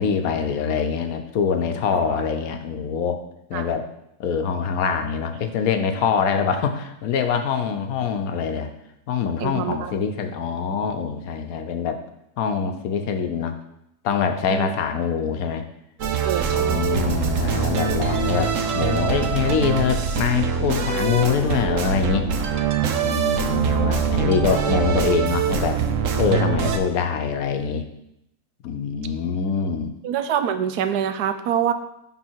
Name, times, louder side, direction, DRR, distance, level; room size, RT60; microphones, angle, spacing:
voice 1, 0.0-3.2 3.5-3.9 4.2-8.7 9.1-12.0 12.4-13.6 14.0-15.6 16.4-22.3 23.0-25.8 26.2-27.9 28.6-29.9, left 6 dB, 70° left, 7 dB, 1.1 m, -24 dB
voice 2, 9.4-9.9 14.5-14.7 16.2-17.2 30.0-31.7, right 9 dB, 85° right, 10 dB, 1.2 m, -25 dB
sound 1, 16.0-26.8, right 7 dB, 60° right, 1.0 m, -23 dB
10.5 x 3.8 x 4.5 m, 0.80 s
omnidirectional pair, 1.7 m